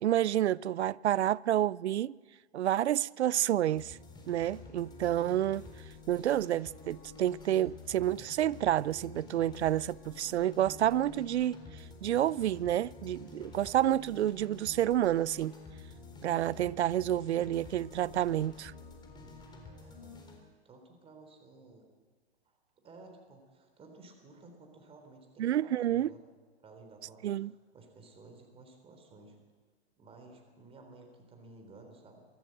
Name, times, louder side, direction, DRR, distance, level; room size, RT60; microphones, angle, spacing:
voice 1, 0.0-2.2 2.5-4.0 4.3-5.7 6.1-11.6 12.0-15.5 16.2-18.7 25.4-26.1 27.2-27.5, right 12 dB, 85° right, 0.5 m, -29 dB
sound 1, 3.7-20.4, left 3 dB, 15° left, 3.9 m, -49 dB
voice 2, 19.6-20.4 20.6-21.8 22.5-26.2 26.6-29.4 30.0-32.3, right 3 dB, 15° right, 3.6 m, -55 dB
24.0 x 15.0 x 7.8 m
hypercardioid pair, 135°, 32 cm